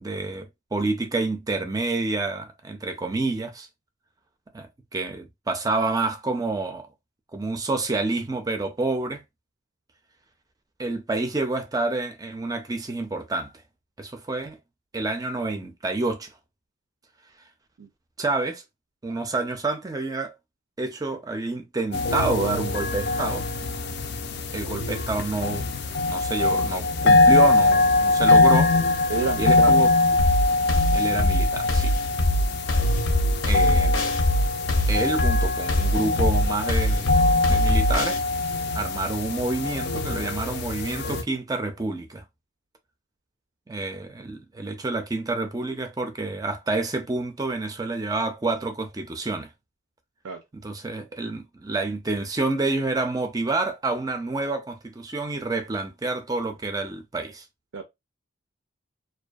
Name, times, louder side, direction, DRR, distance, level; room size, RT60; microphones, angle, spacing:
voice 1, 0.0-3.7 4.5-6.9 7.3-9.2 10.8-13.5 14.0-14.6 14.9-16.3 18.2-18.6 19.0-20.3 20.8-23.5 24.5-25.6 26.1-28.7 29.4-29.9 30.9-31.9 33.5-34.1 34.9-37.1 37.5-38.2 38.7-42.2 43.7-49.5 50.5-57.4, right 3 dB, 20° right, 0.3 m, -28 dB
sound 1, 21.9-41.2, left 2 dB, 55° left, 0.4 m, -23 dB
voice 2, 29.1-29.8 50.2-50.4 57.7-57.8, right 5 dB, 85° right, 0.4 m, -29 dB
sound 2, 30.2-38.2, left 1 dB, 85° left, 0.6 m, -22 dB
2.5 x 2.2 x 2.2 m
head